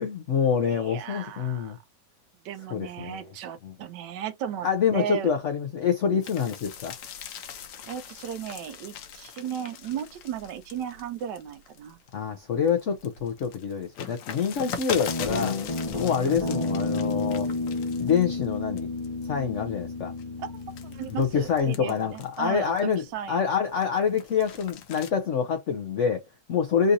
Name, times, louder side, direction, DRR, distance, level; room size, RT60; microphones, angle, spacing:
voice 1, 0.0-1.8 2.7-3.3 3.6-3.7 4.6-6.9 12.1-15.6 15.9-17.5 18.0-18.9 19.3-20.1 21.1-26.9, left 7 dB, 75° left, 0.7 m, -26 dB
voice 2, 0.6-1.8 2.4-4.7 4.9-5.3 7.9-12.0 16.1-16.8 20.4-20.5 20.8-23.4, right 9 dB, 75° right, 1.2 m, -36 dB
sound 1, 6.2-12.1 12.6-18.5 18.8-19.2 19.8-23.1 23.5-25.1, left 7 dB, 90° left, 1.4 m, -40 dB
Guitar, 15.1-21.6, left 3 dB, 30° left, 0.6 m, -31 dB
3.8 x 2.5 x 2.7 m
omnidirectional pair, 1.9 m